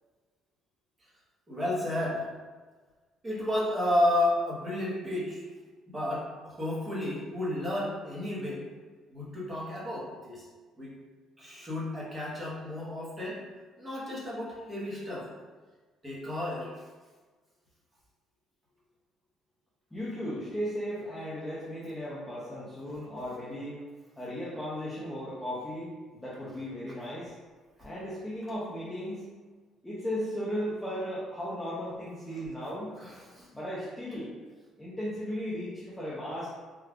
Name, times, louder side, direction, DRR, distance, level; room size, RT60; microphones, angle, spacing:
voice 1, 1.5-2.3 3.2-5.4 5.9-8.6 9.1-10.4 10.8-11.0 11.4-13.4 13.8-15.3 16.0-16.7 22.9-23.0 33.0-33.5, left 1 dB, 15° right, -7 dB, 0.9 m, -32 dB
voice 2, 19.9-23.8 24.2-27.3 27.8-29.3 29.8-32.9 33.5-34.3 34.8-36.5, equal, 5° left, -9 dB, 0.5 m, -36 dB
3.6 x 2.3 x 3.4 m, 1.4 s
cardioid pair, 175°, 0 cm